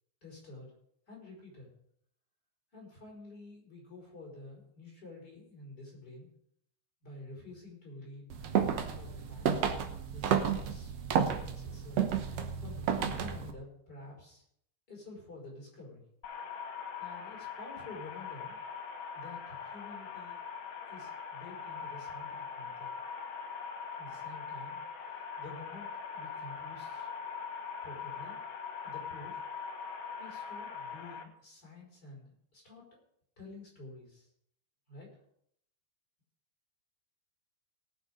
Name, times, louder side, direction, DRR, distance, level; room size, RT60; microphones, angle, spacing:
voice 1, 0.2-0.7 1.1-1.7 2.7-6.3 7.0-9.4 9.8-10.9 11.2-12.1 12.6-14.4 14.9-16.0 17.0-18.6 19.1-20.4 20.9-22.9 24.0-24.8 25.4-27.1 27.8-28.4 28.8-29.4 30.2-33.0 33.4-34.3 34.9-35.1, left 2 dB, 30° left, -3 dB, 5.7 m, -50 dB
sound 1, 8.3-13.5, right 8 dB, 65° right, 1.9 m, -31 dB
sound 2, 16.2-31.2, left 6 dB, 80° left, 2.8 m, -42 dB
18.5 x 7.0 x 5.1 m, 0.70 s
omnidirectional pair, 3.6 m